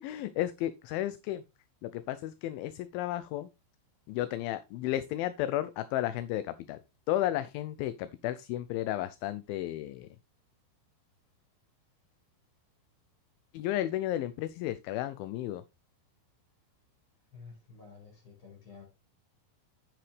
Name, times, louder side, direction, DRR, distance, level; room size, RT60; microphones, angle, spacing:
voice 1, 0.0-1.4 1.8-3.5 4.1-6.8 7.1-10.1 13.5-15.6, left 13 dB, 80° left, 2.3 m, -33 dB
voice 2, 17.3-18.8, left 5 dB, 30° left, 5.9 m, -51 dB
8.9 x 7.8 x 3.3 m
omnidirectional pair, 4.4 m